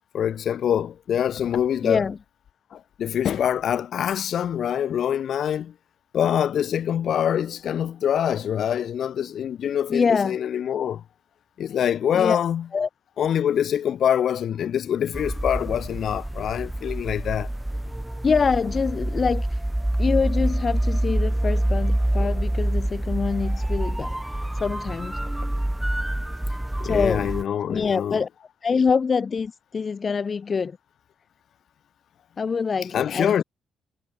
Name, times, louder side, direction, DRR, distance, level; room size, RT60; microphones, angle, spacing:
voice 1, 0.1-2.1 2.7-5.7 6.1-11.0 11.6-12.7 13.2-17.5 26.8-28.2 32.9-33.4, left 9 dB, 65° left, 1.6 m, -25 dB
voice 2, 1.8-2.2 9.9-10.4 12.1-12.4 12.7-12.9 18.2-19.6 20.0-25.5 26.8-27.3 27.7-28.3 28.6-30.8 32.4-33.4, left 5 dB, 40° left, 0.5 m, -25 dB
sound 1, 15.1-27.4, right 1 dB, 5° right, 0.6 m, -26 dB
cardioid pair, 90°, 0 cm